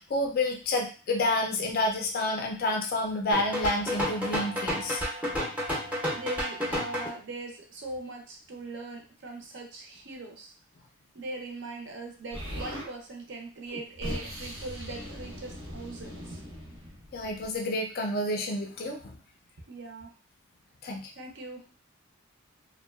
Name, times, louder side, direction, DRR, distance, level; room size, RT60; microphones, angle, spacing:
voice 1, 0.0-5.0 17.1-19.0 20.8-21.1, left 2 dB, 45° left, 2 dB, 0.4 m, -29 dB
sound 1, 3.3-7.1, equal, 5° right, 0.5 m, -31 dB
voice 2, 6.1-10.5 11.1-16.4 19.7-20.1 21.2-21.6, right 2 dB, 60° right, 2 dB, 0.6 m, -40 dB
Explosion, 12.3-12.9 13.7-17.5, equal, 90° right, 1.0 m, -40 dB
2.7 x 2.2 x 2.2 m, 0.37 s
head